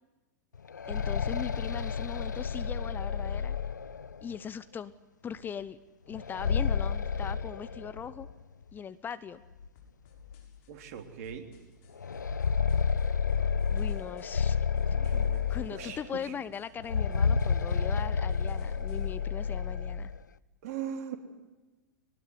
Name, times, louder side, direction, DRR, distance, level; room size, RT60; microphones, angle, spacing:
sound 1, 0.5-4.3 6.1-8.3 8.6-8.7 9.6-9.7 10.2-10.3 12.0-16.1 16.8-20.2, left 6 dB, 80° left, 0.8 m, -30 dB
voice 1, 0.9-3.6 4.2-4.9 5.2-5.8 6.1-8.3 8.7-9.4 13.7-15.0 15.5-20.1, left 7 dB, 20° left, 15 dB, 0.9 m, -40 dB
sound 2, 9.8-19.2, left 6 dB, 50° left, 6.4 m, -58 dB
voice 2, 10.7-11.5 14.9-16.3 20.6-21.2, right 8 dB, 50° right, 5 dB, 3.7 m, -40 dB
24.0 x 19.5 x 9.7 m, 1.1 s
figure-of-eight pair, 100°, 10 cm